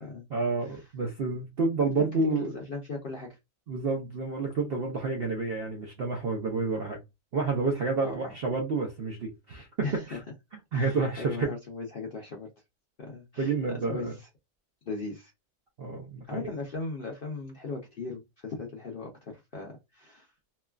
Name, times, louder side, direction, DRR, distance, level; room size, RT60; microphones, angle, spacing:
voice 1, 0.3-2.5 3.7-7.0 7.3-9.7 10.1-10.2 10.7-11.5 13.4-14.1 15.8-16.5, right 3 dB, 60° right, 0.6 m, -29 dB
voice 2, 1.8-3.4 8.0-8.3 9.8-10.2 10.7-12.5 13.0-14.3 14.9-15.3 16.3-20.3, left 3 dB, 55° left, 0.6 m, -38 dB
3.0 x 2.3 x 2.2 m
omnidirectional pair, 1.6 m